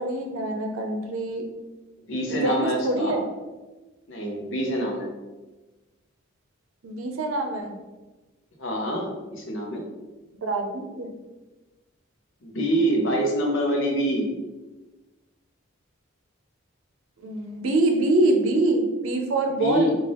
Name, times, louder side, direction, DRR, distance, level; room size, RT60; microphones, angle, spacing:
voice 1, 0.0-1.4 2.3-3.3 6.8-7.8 10.4-11.1 17.2-19.9, right 2 dB, 80° right, 3 dB, 0.6 m, -25 dB
voice 2, 2.1-3.2 4.1-5.1 8.6-9.8 12.4-14.3 19.6-20.0, right 1 dB, 65° left, 0 dB, 0.7 m, -25 dB
3.7 x 2.4 x 3.3 m, 1.2 s
head